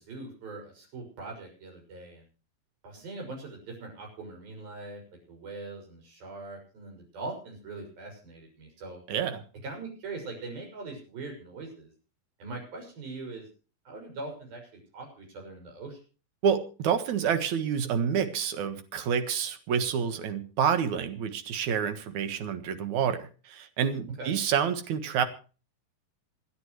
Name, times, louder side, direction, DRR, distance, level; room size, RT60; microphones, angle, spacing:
voice 1, 0.0-2.2 2.8-5.0 5.3-9.0 9.6-11.9 12.4-13.5 13.9-16.0 24.2-24.4, right 3 dB, 85° right, 1 dB, 8.0 m, -41 dB
voice 2, 9.1-9.4 16.4-25.2, right 7 dB, 60° right, 9 dB, 2.6 m, -28 dB
27.5 x 10.0 x 3.1 m, 0.36 s
omnidirectional pair, 4.1 m